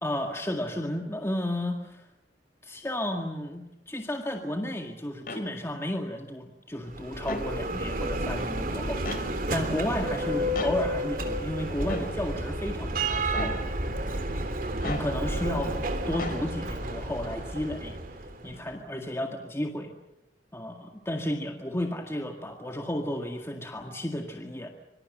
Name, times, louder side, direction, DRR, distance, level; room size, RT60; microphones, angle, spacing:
voice 1, 0.0-2.1 2.6-13.6 14.8-15.8 16.1-17.9 18.4-19.9 20.5-24.7, left 1 dB, 15° left, 3 dB, 2.0 m, -33 dB
sound 1, 5.3-5.4 7.2-7.5 9.1-9.2 10.6-10.8 11.9-12.1 13.3-13.6 14.8-15.1 16.2-16.4, left 2 dB, 55° left, 3.9 m, -34 dB
Bell, 6.8-18.6, right 1 dB, 55° right, 3.2 m, -31 dB
26.0 x 25.0 x 6.7 m, 0.90 s
head